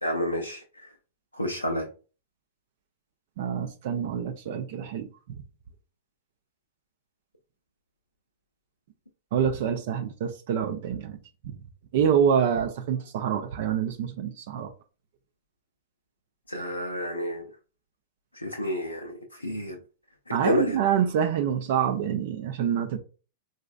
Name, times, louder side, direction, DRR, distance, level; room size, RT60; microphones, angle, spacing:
voice 1, 0.0-0.6 1.3-1.9 16.5-17.5 18.3-19.8 20.3-20.8, left 1 dB, 90° left, 0.5 m, -29 dB
voice 2, 3.4-5.1 9.3-11.2 11.4-11.6 11.9-14.7 20.3-23.0, right 8 dB, 55° right, 0.4 m, -26 dB
3.8 x 2.4 x 2.3 m
figure-of-eight pair, 100°, 0 cm